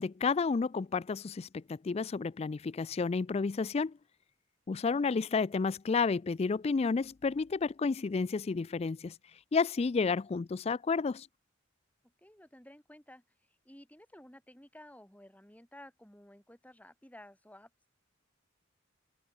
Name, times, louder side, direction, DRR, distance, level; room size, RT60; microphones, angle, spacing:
voice 1, 0.0-3.9 4.7-9.1 9.5-11.3, left 4 dB, 30° left, 0.3 m, -31 dB
voice 2, 12.0-17.9, left 1 dB, 10° left, 2.9 m, -55 dB
head